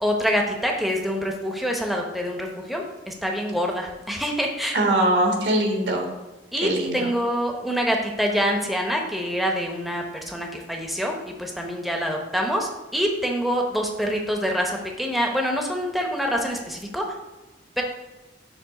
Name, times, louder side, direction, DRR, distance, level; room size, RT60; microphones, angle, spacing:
voice 1, 0.0-4.8 6.5-17.0 17.8-17.9, equal, ahead, 1 dB, 0.8 m, -26 dB
voice 2, 4.7-6.1 6.6-7.1, right 1 dB, 80° right, 1 dB, 1.5 m, -22 dB
7.1 x 3.5 x 5.8 m, 1.1 s
head